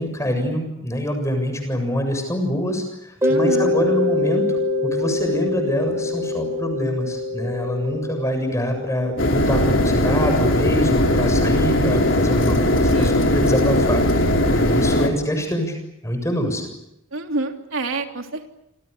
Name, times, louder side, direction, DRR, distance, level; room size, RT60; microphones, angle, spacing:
voice 1, 0.0-4.5 4.8-15.8 16.0-16.7, equal, 15° left, 6 dB, 7.1 m, -25 dB
Mallet percussion, 3.2-11.8, left 2 dB, 15° right, 4.7 m, -25 dB
voice 2, 3.2-3.7 12.9-13.1 17.1-18.5, right 2 dB, 75° right, 4 dB, 3.4 m, -27 dB
sound 1, 9.2-15.1, left 1 dB, 70° left, 4.0 m, -19 dB
29.0 x 27.0 x 6.9 m, 0.85 s
head